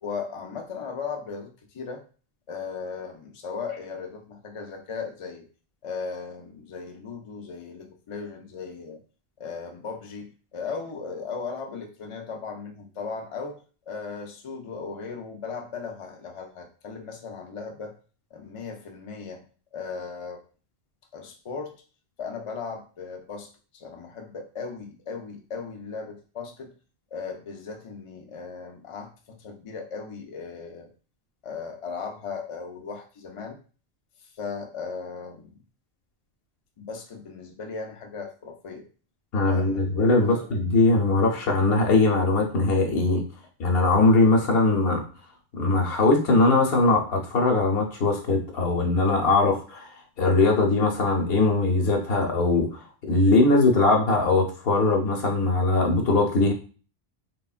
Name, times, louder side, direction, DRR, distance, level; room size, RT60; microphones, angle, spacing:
voice 1, 0.0-2.0 2.5-5.5 5.8-9.0 9.4-17.9 18.3-19.4 19.7-20.4 21.1-21.7 22.2-26.7 27.1-30.9 31.4-33.6 34.4-35.6 36.8-38.9 39.4-39.8 40.3-40.4, left 5 dB, 50° left, 3 dB, 0.4 m, -37 dB
voice 2, 39.3-43.2 43.6-45.0 45.5-49.9 50.2-52.8 53.1-56.5, left 2 dB, 70° left, 1 dB, 0.9 m, -21 dB
3.2 x 2.2 x 2.4 m, 0.38 s
omnidirectional pair, 1.1 m